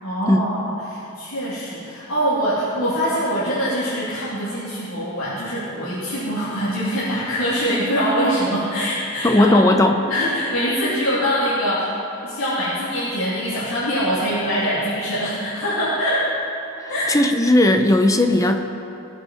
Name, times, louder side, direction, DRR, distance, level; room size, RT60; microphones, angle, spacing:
voice 1, 0.0-9.6 10.1-11.9 12.2-16.3 16.9-17.2, equal, 80° left, -11 dB, 3.2 m, -23 dB
voice 2, 9.2-10.0 16.8-18.6, left 1 dB, 15° left, 5 dB, 0.7 m, -16 dB
20.0 x 8.3 x 4.4 m, 2.8 s
head